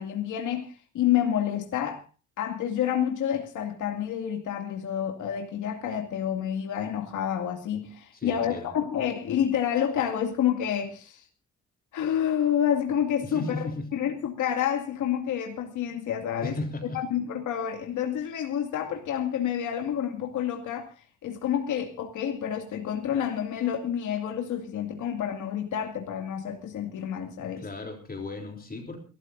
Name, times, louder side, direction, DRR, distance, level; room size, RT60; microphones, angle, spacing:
voice 1, 0.0-2.0 2.4-11.3 11.9-16.6 16.9-27.6, left 9 dB, 80° left, 2.3 m, -29 dB
voice 2, 8.1-8.7 13.2-13.8 16.4-17.0 27.6-29.0, left 2 dB, 30° left, 3.5 m, -35 dB
28.5 x 13.5 x 2.6 m
cardioid pair, 90°, 30 cm